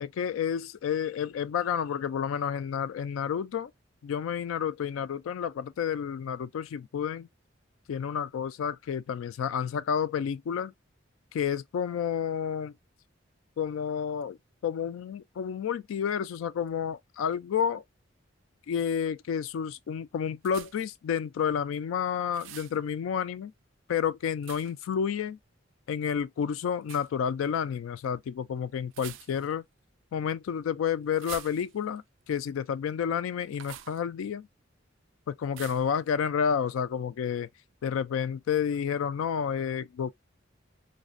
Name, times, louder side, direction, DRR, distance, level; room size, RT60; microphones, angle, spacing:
voice 1, 0.0-3.7 4.0-7.3 7.9-10.7 11.3-12.7 13.6-14.4 14.6-17.8 18.7-23.5 23.9-25.4 25.9-29.6 30.1-34.5 35.3-37.5 37.8-40.1, left 7 dB, 90° left, 0.3 m, -30 dB
sound 1, 20.4-21.0 22.3-22.8 24.4-24.9 26.8-27.1 28.9-29.6 31.1-32.0 33.5-34.0 35.5-36.0, right 11 dB, 75° right, 0.3 m, -45 dB
2.4 x 2.1 x 2.4 m
head